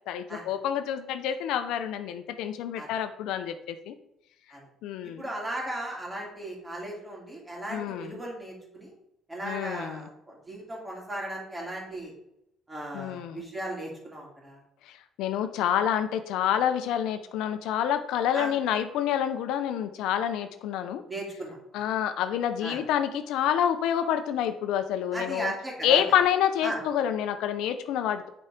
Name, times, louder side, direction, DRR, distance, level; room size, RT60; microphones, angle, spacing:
voice 1, 0.1-3.9 4.8-5.2 7.7-8.2 9.4-10.1 12.9-13.4 14.9-21.0 21.7-25.5 25.8-28.3, left 9 dB, 80° left, 9 dB, 0.6 m, -28 dB
voice 2, 5.0-8.9 9.3-12.1 12.7-14.6 18.3-18.5 21.1-21.8 22.6-22.8 25.1-26.0 26.6-26.8, right 1 dB, 15° right, -3 dB, 3.0 m, -36 dB
8.6 x 4.6 x 5.0 m, 0.80 s
cardioid pair, 115°, 0 cm